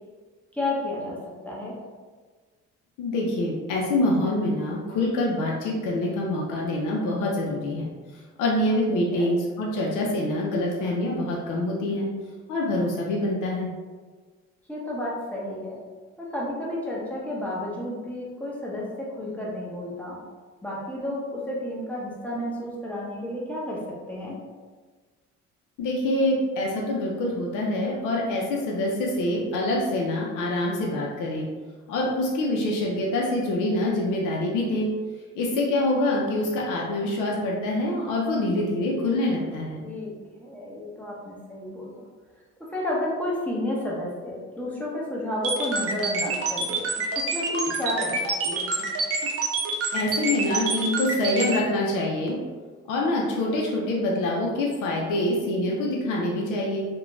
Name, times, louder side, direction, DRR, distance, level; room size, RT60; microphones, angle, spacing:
voice 1, 0.5-1.2 1.4-1.7 9.1-9.3 14.7-15.8 16.2-20.2 20.6-23.8 24.1-24.4 39.8-40.1 40.4-42.0 42.6-46.8 47.2-48.7, left 1 dB, 5° left, -5 dB, 0.7 m, -31 dB
voice 2, 3.0-7.9 8.4-12.1 12.5-13.7 25.8-31.5 31.9-34.9 35.4-39.9 49.9-52.4 52.9-56.9, left 1 dB, 90° left, -2 dB, 0.5 m, -25 dB
sound 1, 45.4-51.6, right 4 dB, 50° right, 0.6 m, -27 dB
2.4 x 2.2 x 3.0 m, 1.5 s
cardioid pair, 90°, 30 cm